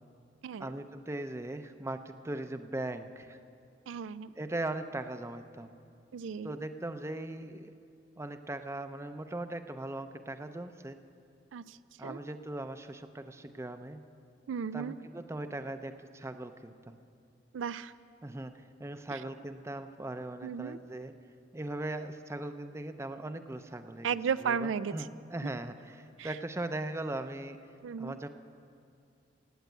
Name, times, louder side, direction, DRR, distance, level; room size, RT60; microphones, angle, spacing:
voice 1, 0.6-3.4 4.4-5.7 6.4-7.7 8.2-11.0 12.0-14.0 14.7-17.0 18.2-21.1 21.5-24.1 24.4-27.6 28.0-28.3, right 2 dB, 15° right, 9 dB, 0.5 m, -39 dB
voice 2, 3.9-4.3 6.1-6.5 11.5-11.8 12.0-12.2 14.5-15.0 17.5-17.9 19.1-19.2 20.4-20.8 24.0-24.9 26.2-26.3 27.8-28.2, right 6 dB, 85° right, 15 dB, 0.4 m, -34 dB
17.5 x 9.4 x 8.0 m, 2.5 s
head